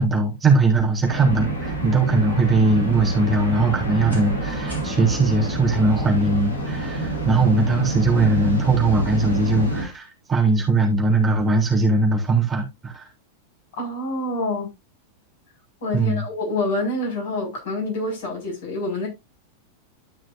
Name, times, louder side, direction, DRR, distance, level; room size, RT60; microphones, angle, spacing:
voice 1, 0.0-13.1 15.9-16.2, right 3 dB, 15° right, 3.3 m, -20 dB
sound 1, 1.0-9.8, right 1 dB, 80° left, 3.5 m, -27 dB
voice 2, 13.8-14.7 15.8-19.1, left 2 dB, 55° left, 5.6 m, -27 dB
13.0 x 6.2 x 2.6 m
figure-of-eight pair, 90°, 0 cm